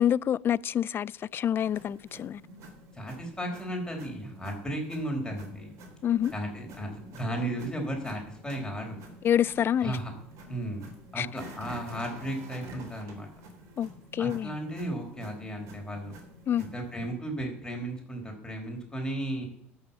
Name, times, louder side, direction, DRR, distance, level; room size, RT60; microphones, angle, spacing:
voice 1, 0.0-2.4 6.0-6.3 9.2-10.0 11.2-11.3 13.8-14.6 16.5-16.7, left 10 dB, 35° left, 0.4 m, -27 dB
sound 1, 1.6-17.1, equal, 55° right, 3.7 m, -49 dB
voice 2, 3.0-5.7 6.3-9.0 9.8-10.1 10.5-10.8 11.1-13.3 14.2-16.2 16.6-19.5, right 1 dB, 10° left, 4.5 m, -35 dB
12.5 x 6.6 x 7.1 m
hypercardioid pair, 70°, 6 cm